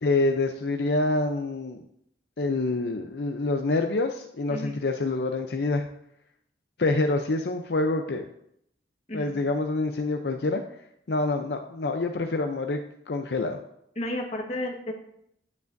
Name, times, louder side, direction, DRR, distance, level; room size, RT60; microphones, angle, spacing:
voice 1, 0.0-1.8 2.4-5.9 6.8-8.3 9.1-10.6 11.1-12.8 13.1-13.6, left 2 dB, 70° left, 5 dB, 0.6 m, -26 dB
voice 2, 14.0-14.9, left 1 dB, 40° left, 2 dB, 1.3 m, -32 dB
9.6 x 9.4 x 2.6 m, 0.74 s
head